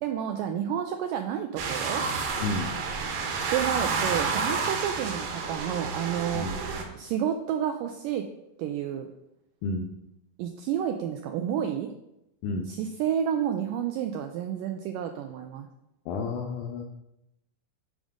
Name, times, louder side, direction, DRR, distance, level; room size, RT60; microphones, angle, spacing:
voice 1, 0.0-2.1 3.5-6.5 7.0-8.3 8.6-9.1 10.4-11.9 12.7-15.7, right 9 dB, 90° right, 5 dB, 1.9 m, -30 dB
sound 1, 1.6-6.8, right 4 dB, 70° right, 2.6 m, -30 dB
voice 2, 2.4-2.8 6.3-6.6 9.6-9.9 12.4-12.7 16.1-16.8, left 3 dB, 85° left, 3 dB, 1.8 m, -31 dB
11.0 x 5.0 x 3.6 m, 0.87 s
omnidirectional pair, 4.4 m